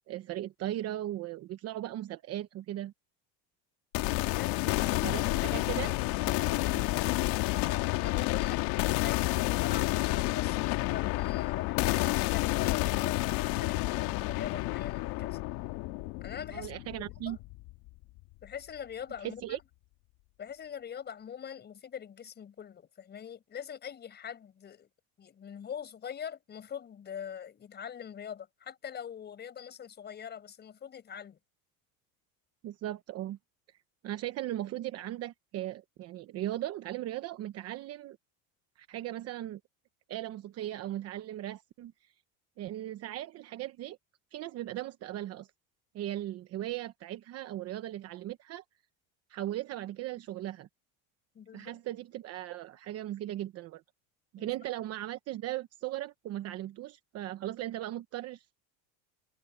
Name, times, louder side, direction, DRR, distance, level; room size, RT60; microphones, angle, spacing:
voice 1, 0.1-2.9 5.0-6.0 6.2-6.8 16.5-17.4 19.2-19.6 32.6-33.4 34.0-38.2 38.8-39.6 40.1-42.1 42.6-44.0 44.3-45.5 45.9-48.6 49.3-50.7 51.5-53.8 54.3-58.6, right 14 dB, 40° right, 1.0 m, -38 dB
sound 1, 3.9-17.9, left 20 dB, 60° left, 2.0 m, -30 dB
voice 2, 4.1-5.0 7.5-15.4 16.2-17.0 17.2-17.4 18.4-19.6 20.4-24.9 25.2-31.4 51.3-51.7 54.4-54.5, left 8 dB, 25° left, 6.1 m, -43 dB
cardioid pair, 160°, 38 cm